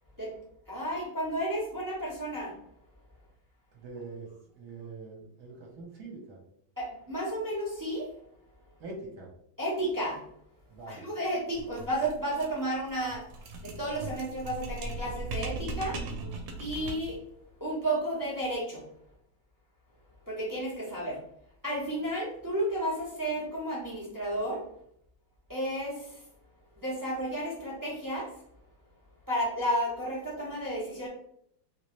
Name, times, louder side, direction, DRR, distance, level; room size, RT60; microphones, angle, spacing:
voice 1, 0.7-2.5 6.8-8.1 9.6-10.2 10.9-13.2 13.6-16.0 16.6-17.2 17.6-18.9 20.3-21.2 21.6-24.6 25.5-26.2 26.8-28.3 29.3-31.1, right 1 dB, 25° right, -5 dB, 0.4 m, -32 dB
voice 2, 3.7-4.3 4.5-6.4 8.8-9.3 10.7-11.0, right 3 dB, 60° right, -1 dB, 1.3 m, -43 dB
sound 1, 11.5-17.2, right 3 dB, 80° right, 1.3 m, -38 dB
3.0 x 2.9 x 3.0 m, 0.71 s
omnidirectional pair, 2.1 m